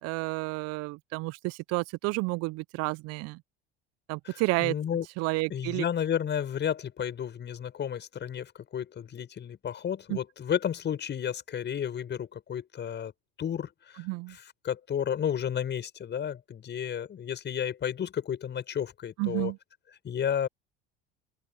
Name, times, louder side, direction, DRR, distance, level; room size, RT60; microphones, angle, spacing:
voice 1, 0.0-3.4 4.1-4.7 5.2-5.8 10.1-10.2 14.0-14.4 19.2-19.6, right 25 dB, 55° right, 1.0 m, -30 dB
voice 2, 4.2-5.1 5.5-13.1 13.4-19.5 20.0-20.5, left 9 dB, 35° left, 6.1 m, -32 dB
open air
hypercardioid pair, 70°, 30 cm